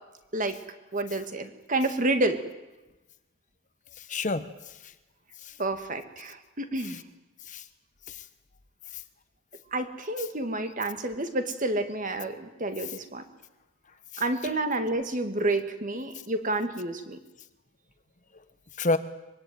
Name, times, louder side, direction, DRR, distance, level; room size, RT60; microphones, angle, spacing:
voice 1, 0.9-2.4 5.6-7.0 9.7-13.2 14.2-17.2, right 2 dB, 40° right, 8 dB, 2.1 m, -29 dB
voice 2, 4.0-4.9 5.4-5.6 6.8-7.0 7.5-7.6 8.1-8.2 8.9-9.0 14.1-14.2 18.8-19.0, left 3 dB, 35° left, 11 dB, 1.1 m, -30 dB
24.0 x 22.5 x 9.2 m, 1.0 s
head